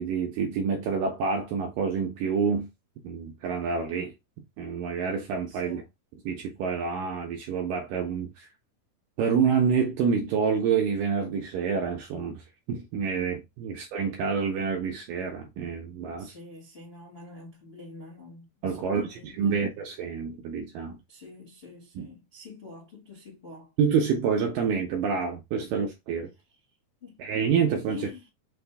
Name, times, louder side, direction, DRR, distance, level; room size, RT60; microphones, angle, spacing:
voice 1, 0.0-2.7 3.0-4.1 4.6-5.8 6.3-8.5 9.2-16.3 18.6-21.0 22.0-22.1 23.8-26.3 27.2-28.1, right 6 dB, 80° right, 2.0 m, -27 dB
voice 2, 5.5-5.9 13.6-13.7 16.2-19.7 21.1-23.7 26.3-26.6 27.0-27.3 27.9-28.3, left 4 dB, 40° left, 0.8 m, -46 dB
5.9 x 2.6 x 3.3 m
omnidirectional pair, 4.5 m